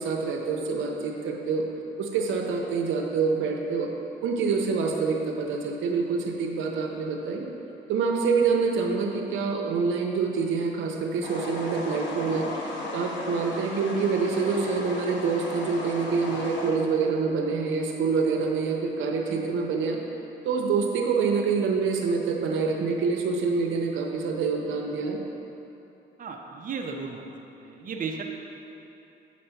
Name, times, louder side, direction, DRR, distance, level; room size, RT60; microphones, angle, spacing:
voice 1, 0.0-1.7 2.0-3.9 4.2-7.5 7.9-12.5 12.9-20.0 20.4-25.2, right 5 dB, 80° right, 1 dB, 0.8 m, -26 dB
sound 1, 11.2-16.7, left 2 dB, 65° left, 1.4 m, -35 dB
voice 2, 26.2-27.3 27.6-28.2, right 5 dB, 45° right, 1 dB, 0.7 m, -34 dB
7.6 x 4.2 x 5.7 m, 2.9 s
cardioid pair, 90°, 20 cm